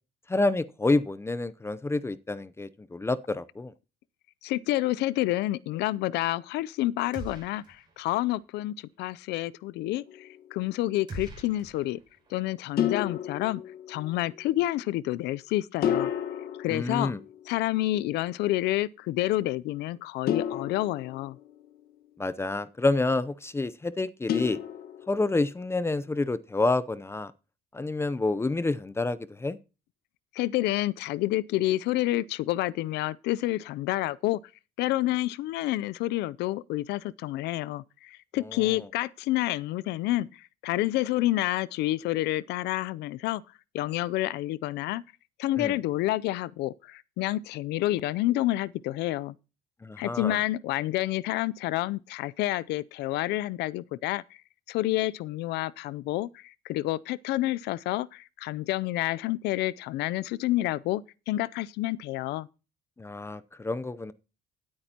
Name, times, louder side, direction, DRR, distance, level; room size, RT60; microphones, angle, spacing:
voice 1, 0.3-3.7 16.7-17.2 22.2-24.6 25.1-27.3 27.7-29.6 38.4-38.9 45.6-45.8 49.8-50.4 63.0-64.1, left 2 dB, 15° left, 0.6 m, -28 dB
voice 2, 4.4-12.0 12.3-13.6 13.9-16.1 16.6-17.1 17.5-21.4 30.3-34.4 34.8-43.4 43.7-45.0 45.4-49.3 50.0-54.2 54.7-62.5, left 16 dB, 80° left, 0.5 m, -29 dB
sound 1, 7.1-8.0 8.3-8.4 11.1-12.4, right 2 dB, 25° right, 6.0 m, -42 dB
sound 2, 10.1-10.6 12.8-14.3 15.8-17.8 20.3-21.9 24.3-25.4, left 9 dB, 65° left, 1.4 m, -32 dB
16.0 x 8.8 x 2.9 m
cardioid pair, 110°, 17 cm